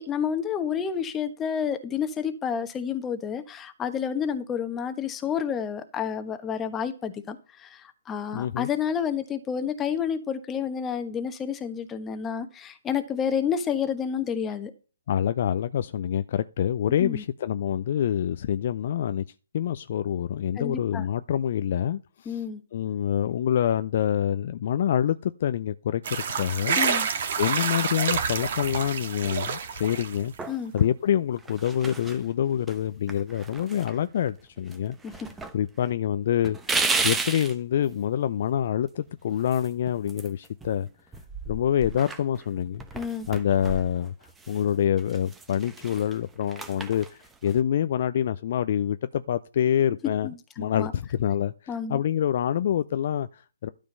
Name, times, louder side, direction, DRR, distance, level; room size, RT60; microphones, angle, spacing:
voice 1, 0.0-14.7 17.0-17.2 20.6-21.0 22.2-22.6 26.8-27.1 30.5-30.7 35.0-35.3 42.9-43.3 50.2-50.9 51.7-52.0, left 7 dB, 15° left, 1.3 m, -30 dB
voice 2, 8.3-8.7 15.1-19.2 19.5-22.4 22.7-26.0 26.4-26.8 27.4-30.3 30.7-34.9 35.5-36.6 37.0-40.9 41.5-42.8 43.3-44.1 44.5-50.3 50.6-53.7, left 10 dB, 45° left, 0.5 m, -26 dB
sound 1, 26.0-30.4, right 6 dB, 50° right, 1.8 m, -28 dB
sound 2, 29.2-29.9 30.4-30.9 31.4-32.2 32.7-32.8 33.1-34.4 34.7-35.5 35.8-35.9 36.4-37.5 39.4-40.8 41.1-44.6 45.0-47.6, right 3 dB, 10° right, 1.0 m, -34 dB
12.5 x 5.1 x 5.4 m
figure-of-eight pair, 135°, 0 cm